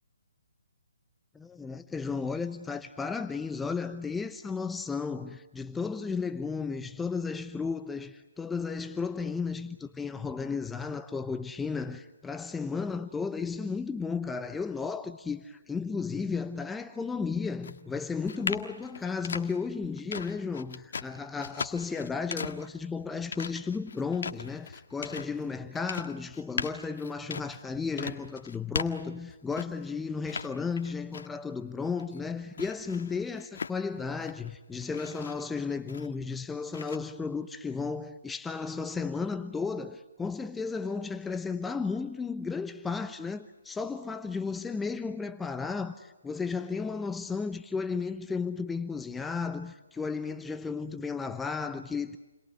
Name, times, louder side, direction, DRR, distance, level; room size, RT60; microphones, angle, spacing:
voice 1, 1.3-52.2, left 5 dB, 5° left, 0.9 m, -34 dB
sound 1, 17.6-29.9 30.2-31.5 31.8-34.5 34.8-36.3 36.7-37.0, left 5 dB, 65° left, 1.7 m, -39 dB
30.0 x 22.5 x 8.3 m
hypercardioid pair, 145°, 0 cm